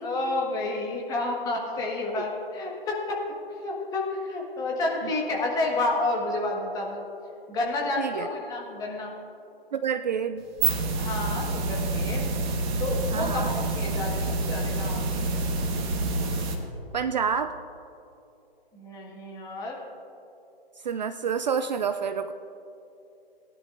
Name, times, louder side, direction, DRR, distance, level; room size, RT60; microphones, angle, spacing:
voice 1, 0.0-3.2 3.5-7.0 7.5-9.1 11.0-12.3 12.8-15.4 18.7-19.8, left 2 dB, 10° left, -1 dB, 1.5 m, -30 dB
voice 2, 8.0-8.3 9.7-10.4 13.1-13.5 16.9-17.5 20.8-22.3, right 7 dB, 45° right, 9 dB, 0.4 m, -28 dB
sound 1, 10.4-16.5, right 3 dB, 25° right, 1.4 m, -28 dB
19.5 x 10.5 x 2.6 m, 2.8 s
figure-of-eight pair, 140°, 30 cm